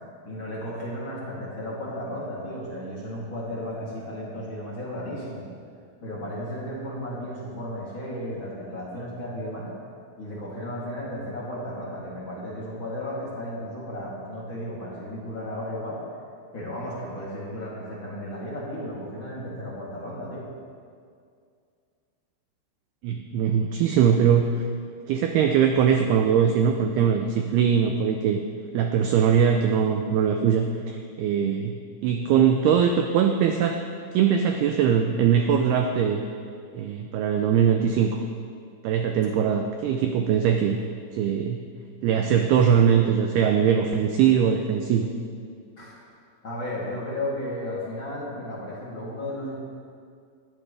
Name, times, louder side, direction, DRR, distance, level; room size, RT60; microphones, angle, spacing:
voice 1, 0.2-5.5 6.0-9.7 10.2-16.0 16.5-20.4 45.8-46.0 46.4-49.5, left 1 dB, 30° left, -7 dB, 3.0 m, -34 dB
voice 2, 23.0-24.5 25.1-28.4 28.7-31.8 32.0-33.8 34.1-36.2 36.7-38.2 38.8-40.8 41.1-41.7 42.0-45.1, right 8 dB, 85° right, 5 dB, 2.3 m, -21 dB
19.5 x 14.0 x 3.4 m, 2.3 s
omnidirectional pair, 5.4 m